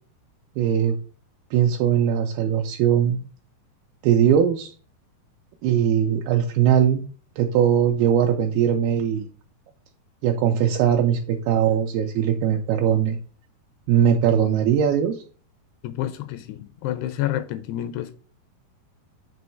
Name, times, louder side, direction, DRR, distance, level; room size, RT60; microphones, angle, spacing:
voice 1, 0.6-1.0 1.5-3.2 4.0-4.7 5.6-7.0 7.4-9.3 10.2-13.2 13.9-15.2, right 9 dB, 80° right, 2.3 m, -20 dB
voice 2, 15.8-18.1, left 13 dB, 85° left, 2.5 m, -29 dB
7.6 x 3.1 x 4.4 m
omnidirectional pair, 4.7 m